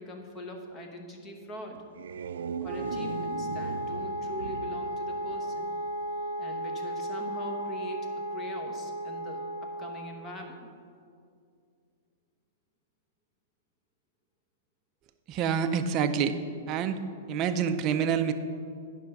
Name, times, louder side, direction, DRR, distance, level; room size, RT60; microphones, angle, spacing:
voice 1, 0.0-1.8 2.6-5.7 6.4-9.4 9.8-10.6, equal, 15° left, 2 dB, 1.0 m, -42 dB
sound 1, 1.8-6.0, right 6 dB, 90° right, 0.3 m, -39 dB
Wind instrument woodwind instrument, 2.6-10.1, equal, 60° right, 0.8 m, -35 dB
voice 2, 15.3-16.4 16.7-17.0 17.3-18.3, right 7 dB, 30° right, 8 dB, 0.5 m, -27 dB
10.5 x 5.4 x 5.2 m, 2.3 s
supercardioid pair, 160°, 0 cm